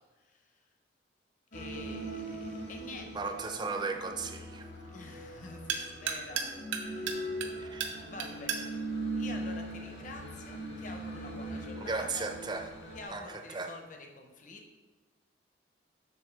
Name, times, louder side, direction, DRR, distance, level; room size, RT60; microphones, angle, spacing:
voice 1, 0.2-0.6 1.5-3.3 4.9-6.4 6.8-7.5 8.0-8.8 9.2-12.3 12.9-14.8, left 2 dB, 45° left, 3 dB, 0.7 m, -47 dB
sound 1, 1.5-13.1, right 1 dB, 65° left, 1.4 m, -40 dB
sound 2, 2.7-10.2, right 6 dB, 85° right, 0.7 m, -40 dB
voice 2, 3.1-4.7 7.6-8.1 11.8-12.7 13.1-13.7, right 4 dB, 25° right, 5 dB, 0.4 m, -36 dB
6.9 x 3.6 x 4.6 m, 1.2 s
head